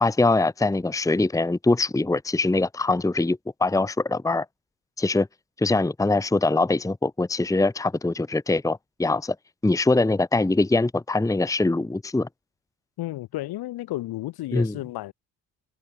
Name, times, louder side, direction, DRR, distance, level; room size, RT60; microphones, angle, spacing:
voice 1, 0.0-4.4 5.0-5.3 5.6-9.4 9.6-12.3 14.5-14.8, left 2 dB, 10° left, 1.0 m, -23 dB
voice 2, 13.0-15.1, left 16 dB, 75° left, 4.4 m, -32 dB
hypercardioid pair, 50°, 38 cm